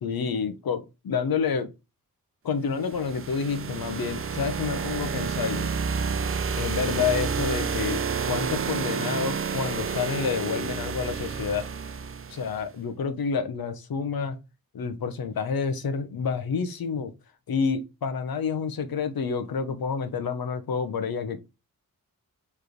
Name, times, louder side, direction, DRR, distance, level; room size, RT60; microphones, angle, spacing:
voice 1, 0.0-1.7 2.4-5.7 6.6-11.7 12.3-14.4 14.7-17.1 17.5-21.4, left 6 dB, 90° left, 0.8 m, -29 dB
sound 1, 2.8-12.6, right 5 dB, 40° right, 0.5 m, -30 dB
4.9 x 3.4 x 3.0 m
wide cardioid pair, 80°, 35 cm